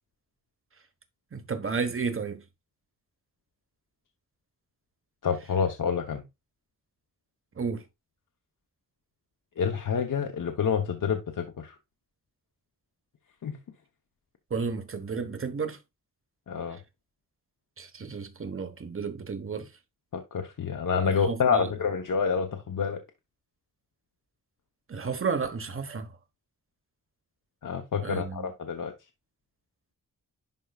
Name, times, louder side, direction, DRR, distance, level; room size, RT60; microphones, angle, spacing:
voice 1, 1.3-2.4 7.6-7.8 14.5-15.8 17.8-19.7 21.0-21.7 24.9-26.1 28.0-28.5, right 5 dB, 40° right, 1.3 m, -32 dB
voice 2, 5.2-6.2 9.6-11.7 13.4-13.6 16.5-16.8 20.1-23.0 27.6-28.9, left 6 dB, 70° left, 1.0 m, -28 dB
11.0 x 4.6 x 2.4 m
wide cardioid pair, 115°, 32 cm